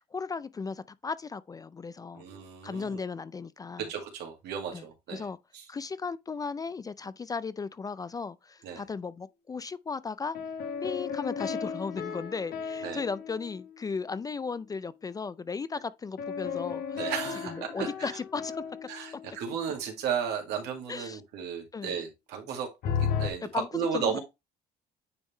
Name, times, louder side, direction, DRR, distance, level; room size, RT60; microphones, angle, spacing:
voice 1, 0.1-2.2 2.6-3.9 4.7-4.8 5.1-5.4 5.7-10.4 10.8-17.1 17.4-18.6 20.9-21.2 21.7-21.9 23.5-23.7 23.9-24.2, left 4 dB, 20° left, 0.3 m, -36 dB
voice 2, 2.1-3.0 3.8-5.3 5.5-5.6 8.6-8.8 12.8-13.0 16.9-18.1 18.9-22.7 23.0-24.2, right 7 dB, 80° right, 2.1 m, -34 dB
sound 1, 10.3-14.2 16.2-19.7 22.8-23.3, left 7 dB, 65° left, 1.2 m, -35 dB
9.5 x 3.6 x 3.2 m
cardioid pair, 110°, 17 cm